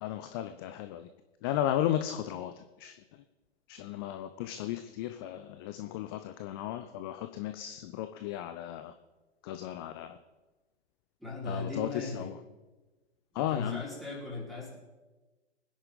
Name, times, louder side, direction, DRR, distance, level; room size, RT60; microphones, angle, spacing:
voice 1, 0.0-1.1 1.4-2.9 3.7-8.9 9.4-10.2 11.5-12.3 13.3-13.8, left 12 dB, 20° left, 9 dB, 0.5 m, -35 dB
voice 2, 11.2-12.3 13.3-14.8, left 3 dB, ahead, -7 dB, 4.7 m, -38 dB
23.5 x 10.0 x 3.9 m, 1.2 s
figure-of-eight pair, 115°, 34 cm